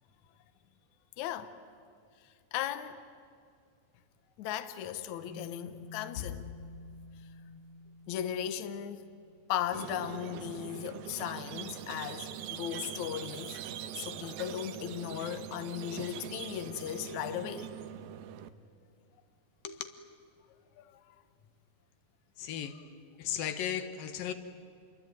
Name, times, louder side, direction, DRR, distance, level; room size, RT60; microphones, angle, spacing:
voice 1, 1.2-1.5 2.5-3.0 4.4-6.5 8.1-9.1 9.5-13.6 14.0-17.7 20.8-20.9, left 10 dB, 65° left, 2.2 m, -37 dB
sound 1, 5.3-9.6, left 1 dB, 70° right, 5.1 m, -51 dB
Squeak, 9.7-18.5, right 10 dB, 85° right, 2.7 m, -42 dB
voice 2, 22.4-22.8 23.2-24.3, left 9 dB, 80° left, 3.0 m, -35 dB
28.0 x 22.0 x 9.2 m
omnidirectional pair, 4.0 m